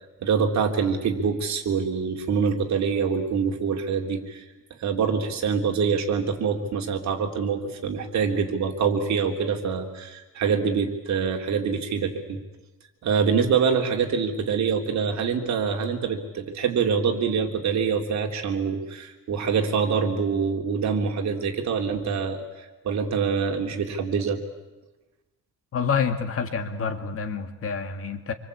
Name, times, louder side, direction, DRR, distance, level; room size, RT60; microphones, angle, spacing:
voice 1, 0.2-4.4 4.8-12.4 13.0-22.4 22.8-24.4, right 6 dB, 50° right, 3 dB, 3.5 m, -25 dB
voice 2, 25.7-28.3, left 6 dB, 40° left, 7 dB, 2.2 m, -27 dB
27.0 x 25.0 x 8.5 m, 1.1 s
cardioid pair, 165°, 34 cm